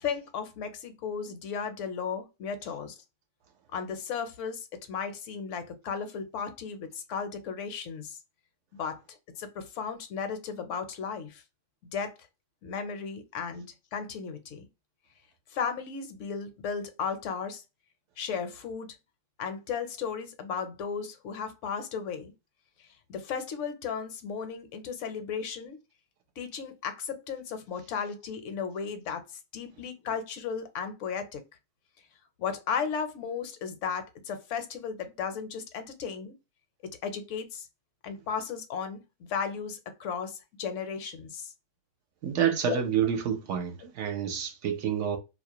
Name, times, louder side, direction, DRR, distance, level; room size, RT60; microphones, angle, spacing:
voice 1, 0.0-3.0 3.7-8.2 8.7-11.4 11.9-12.2 12.6-14.7 15.5-17.6 18.2-18.9 19.4-22.3 22.8-25.8 26.4-29.3 29.5-31.4 32.4-36.4 36.8-37.7 38.0-39.0 39.3-41.5 42.7-42.8, left 6 dB, 75° left, 0.9 m, -35 dB
voice 2, 42.2-45.2, right 8 dB, 75° right, 0.9 m, -28 dB
2.4 x 2.0 x 2.7 m
omnidirectional pair, 1.3 m